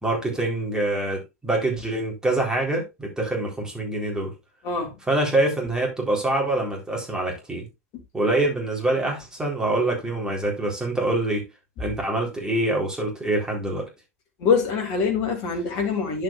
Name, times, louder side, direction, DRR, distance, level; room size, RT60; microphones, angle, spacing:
voice 1, 0.0-4.3 5.1-7.7 8.1-11.4 11.8-13.9, right 2 dB, 10° right, 3.8 m, -25 dB
voice 2, 4.6-5.0 8.4-8.5 14.4-16.2, left 5 dB, 45° left, 3.0 m, -24 dB
10.5 x 7.2 x 2.5 m
figure-of-eight pair, 90°, 8 cm